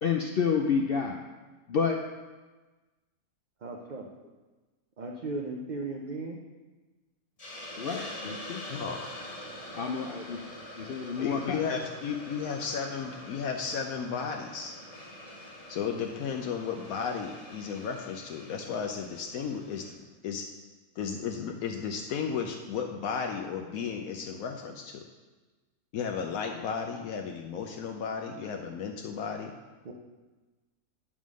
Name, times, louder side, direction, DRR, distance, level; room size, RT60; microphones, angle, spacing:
voice 1, 0.0-1.2 1.7-2.0 7.8-8.6 9.7-10.4 10.8-11.6, left 6 dB, 60° left, 2 dB, 0.6 m, -29 dB
voice 2, 3.6-4.1 5.0-6.4 29.8-29.9, right 3 dB, 45° right, 1 dB, 0.6 m, -36 dB
Hiss, 7.4-19.9, left 1 dB, 30° left, 1.0 m, -45 dB
voice 3, 8.7-9.0 11.2-14.8 15.7-19.9 20.2-20.5 21.0-25.0 25.9-29.5, left 6 dB, 80° left, 3 dB, 1.1 m, -34 dB
9.9 x 3.6 x 6.2 m, 1.2 s
omnidirectional pair, 1.5 m